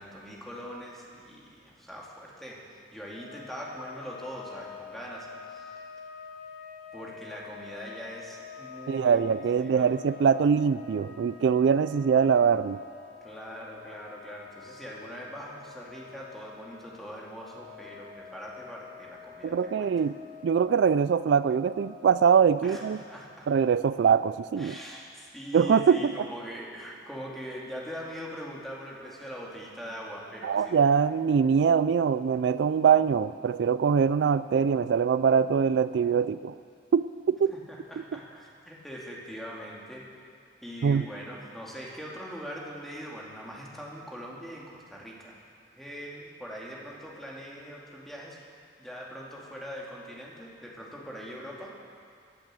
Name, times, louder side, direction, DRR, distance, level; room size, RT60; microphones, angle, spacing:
voice 1, 0.0-2.6 2.9-5.8 6.9-9.2 9.5-9.9 13.2-19.9 22.6-23.5 24.6-30.7 37.5-40.1 40.6-45.4 45.8-48.4 48.8-51.8, equal, ahead, -4 dB, 2.5 m, -42 dB
sound 1, 3.1-22.7, left 6 dB, 45° left, 2.7 m, -47 dB
voice 2, 8.9-12.8 19.4-20.1 20.4-23.0 23.5-24.8 25.5-26.1 30.4-36.5 36.9-37.5 40.8-41.1, right 6 dB, 65° right, 15 dB, 0.3 m, -23 dB
18.5 x 10.5 x 7.6 m, 2.4 s
head